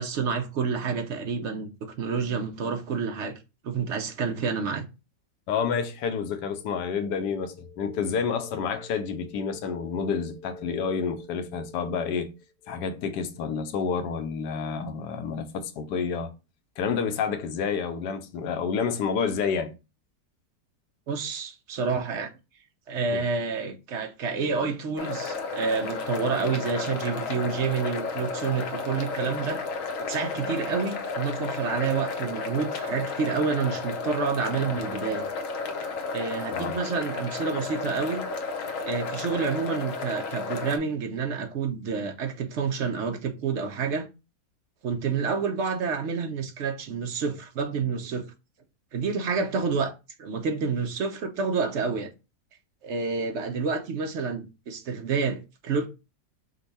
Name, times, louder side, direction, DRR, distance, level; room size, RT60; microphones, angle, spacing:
voice 1, 0.0-3.3 3.6-4.8 21.1-22.3 22.9-29.6 30.1-35.3 36.1-38.2 38.9-44.1 44.8-48.3 48.9-49.9 50.2-52.1 52.8-55.9, right 5 dB, 65° right, 0.7 m, -29 dB
voice 2, 5.5-12.3 12.6-16.3 16.8-19.7 23.1-23.2 36.5-36.8, left 6 dB, 80° left, 1.3 m, -29 dB
sound 1, 25.0-40.8, left 4 dB, 60° left, 0.9 m, -33 dB
5.3 x 2.2 x 4.0 m
omnidirectional pair, 1.8 m